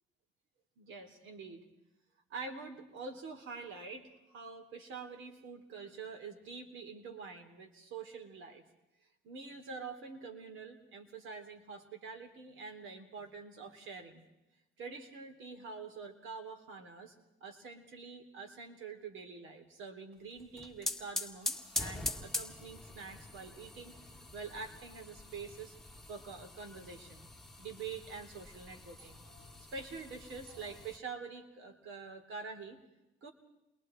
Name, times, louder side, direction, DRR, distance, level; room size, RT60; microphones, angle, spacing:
voice 1, 0.8-1.6 2.3-8.6 9.2-14.2 14.8-17.1 17.4-23.9 24.3-25.7 26.1-27.3 27.6-32.8 33.2-33.3, right 4 dB, 80° right, 4 dB, 3.2 m, -46 dB
sound 1, 20.4-31.0, left 2 dB, ahead, 2.0 m, -43 dB
29.0 x 22.0 x 4.5 m, 0.94 s
cardioid pair, 90°, 20 cm